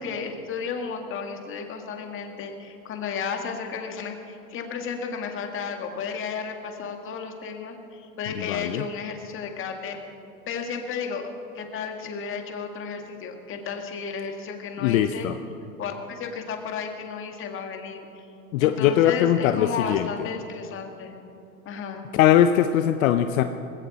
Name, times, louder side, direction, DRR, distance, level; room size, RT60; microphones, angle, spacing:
voice 1, 0.0-10.0 10.5-11.3 11.6-15.3 15.8-18.3 18.6-21.1 21.7-22.1, left 6 dB, 25° left, 4 dB, 1.8 m, -33 dB
voice 2, 8.3-8.9 14.8-15.4 18.5-20.1 22.1-23.4, left 11 dB, 60° left, 9 dB, 0.8 m, -21 dB
20.0 x 16.5 x 4.1 m, 2.7 s
supercardioid pair, 140°, 46 cm